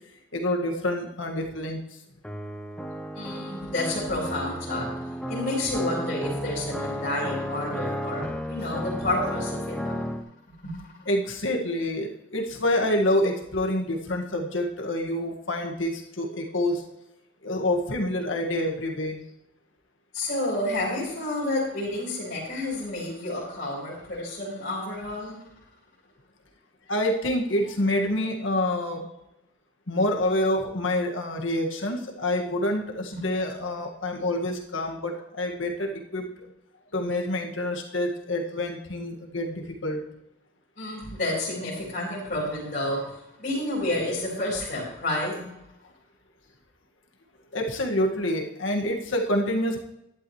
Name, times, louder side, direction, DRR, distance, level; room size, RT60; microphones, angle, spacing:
voice 1, 0.3-1.8 11.1-16.8 17.4-19.2 26.9-29.1 29.9-36.3 36.9-40.0 47.5-49.8, left 1 dB, 70° left, 2 dB, 1.9 m, -27 dB
sound 1, 2.2-10.2, equal, 5° left, 0.9 m, -33 dB
voice 2, 3.1-4.9 5.3-10.0 10.6-10.8 20.1-25.4 33.1-33.2 40.8-43.1 43.4-45.6, left 1 dB, 45° left, -7 dB, 4.0 m, -30 dB
11.5 x 11.5 x 3.2 m, 0.85 s
head